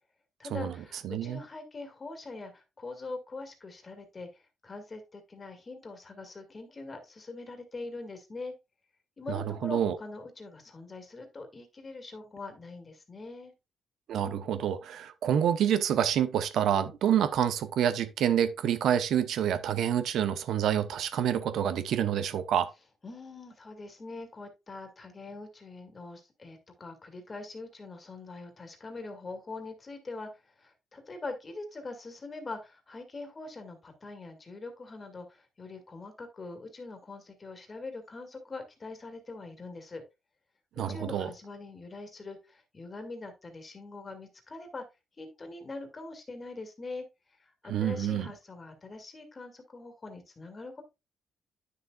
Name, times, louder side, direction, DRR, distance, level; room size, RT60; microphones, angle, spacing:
voice 1, 0.4-8.5 9.2-13.5 23.0-40.0 40.8-44.9 45.2-47.0 47.4-50.8, left 3 dB, 30° left, 2.0 m, -43 dB
voice 2, 1.0-1.4 9.3-9.4 9.6-10.0 14.1-22.7 40.8-41.3 47.7-48.3, right 9 dB, 75° right, 0.8 m, -27 dB
9.5 x 6.5 x 2.3 m
cardioid pair, 90°, 0 cm